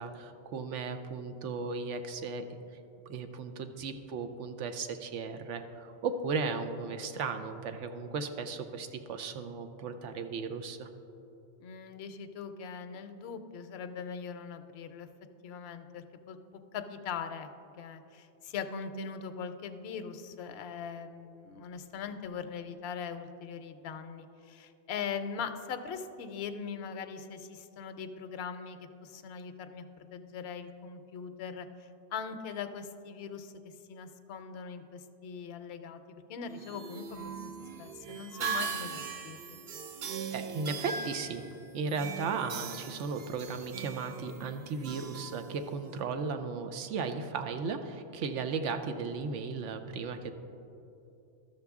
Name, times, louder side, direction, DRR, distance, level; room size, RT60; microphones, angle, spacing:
voice 1, 0.0-2.4 3.1-10.9 40.3-41.4 41.7-50.3, right 4 dB, 85° right, 8 dB, 1.0 m, -36 dB
voice 2, 11.6-15.1 15.4-16.4 16.7-17.5 17.8-33.5 33.9-37.3 37.8-39.6, left 6 dB, 70° left, 9 dB, 0.8 m, -41 dB
sound 1, 36.5-46.0, right 5 dB, 65° right, 0.8 m, -40 dB
12.5 x 6.6 x 3.5 m, 2.8 s
omnidirectional pair, 1.2 m